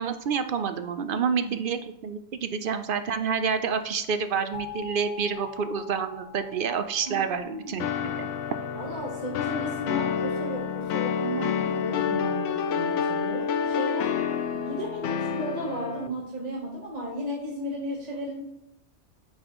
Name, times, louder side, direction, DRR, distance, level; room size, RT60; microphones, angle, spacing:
voice 1, 0.0-8.3, right 6 dB, 60° right, 9 dB, 0.6 m, -28 dB
voice 2, 1.1-1.6 7.1-7.7 8.7-14.2 14.5-18.4, equal, 35° right, -2 dB, 1.2 m, -34 dB
sound 1, 4.5-9.3, left 7 dB, 50° left, 1.7 m, -44 dB
sound 2, 7.8-16.1, left 7 dB, 80° left, 0.9 m, -28 dB
8.5 x 5.6 x 3.0 m, 0.83 s
omnidirectional pair, 1.2 m